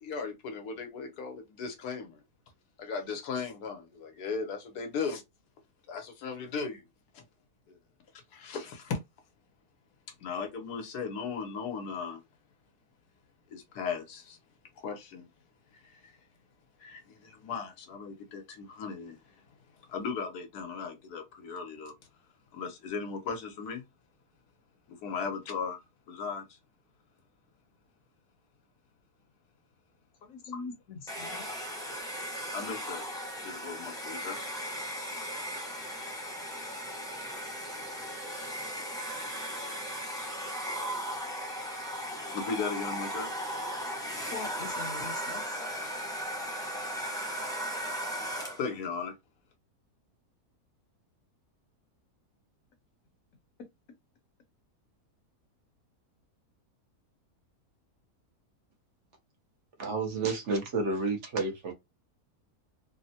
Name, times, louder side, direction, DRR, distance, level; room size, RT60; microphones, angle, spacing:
voice 1, 0.0-2.2 2.8-5.2 5.9-6.9 7.1-7.2 7.7-7.8 8.3-9.0 10.1-12.2 13.5-14.4 14.8-15.3 15.7-16.2 16.8-19.4 19.8-21.9 22.5-23.8 24.9-25.8 26.1-26.6 30.5-30.6 32.5-33.1 33.4-34.4 37.3-37.4 41.2-41.3 42.2-43.3 48.6-49.1, left 5 dB, 85° left, 1.4 m, -37 dB
voice 2, 30.2-31.5 44.3-45.6, left 4 dB, 65° left, 1.1 m, -42 dB
Domestic sounds home sounds, 31.1-48.7, equal, 5° left, 0.3 m, -37 dB
voice 3, 59.8-61.7, right 3 dB, 55° right, 1.0 m, -30 dB
3.4 x 2.0 x 2.7 m
omnidirectional pair, 1.6 m